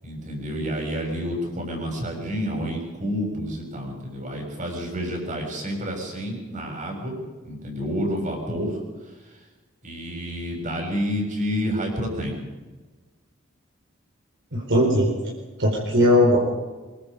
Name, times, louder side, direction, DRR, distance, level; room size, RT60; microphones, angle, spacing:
voice 1, 0.0-7.2 7.4-8.8 9.8-12.3, equal, 40° right, 1 dB, 7.2 m, -29 dB
voice 2, 14.5-15.1 15.6-16.4, left 1 dB, 60° right, -1 dB, 4.7 m, -18 dB
24.0 x 23.0 x 5.3 m, 1.2 s
head